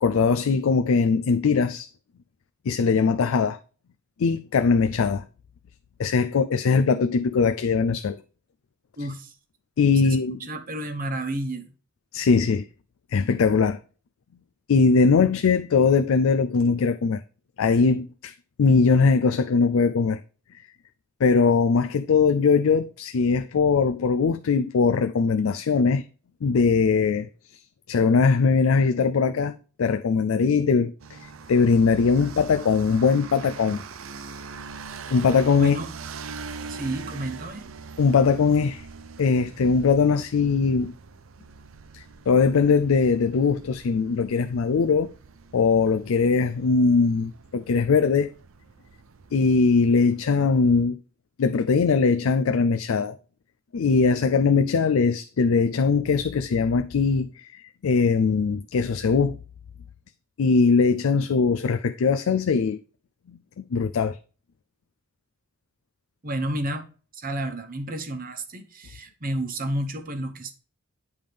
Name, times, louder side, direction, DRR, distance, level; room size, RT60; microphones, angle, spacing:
voice 1, 0.0-1.9 2.7-3.6 4.2-5.2 6.0-8.2 9.8-10.4 12.1-12.6 13.1-13.8 14.7-17.2 17.6-18.3 18.6-20.2 21.2-26.0 26.4-27.3 27.9-33.8 35.1-35.8 38.0-38.9 39.2-40.9 41.9-45.1 45.5-48.3 49.3-51.0 51.4-53.2 53.7-59.4 60.4-62.8 63.3-63.4 63.7-64.2, left 5 dB, 80° left, 0.4 m, -21 dB
voice 2, 9.0-9.3 10.0-11.7 35.6-35.9 36.7-37.6 66.2-66.9 67.1-70.5, right 1 dB, 40° right, 1.0 m, -31 dB
sound 1, 31.0-50.8, right 5 dB, 70° right, 0.6 m, -43 dB
9.4 x 3.6 x 5.1 m
head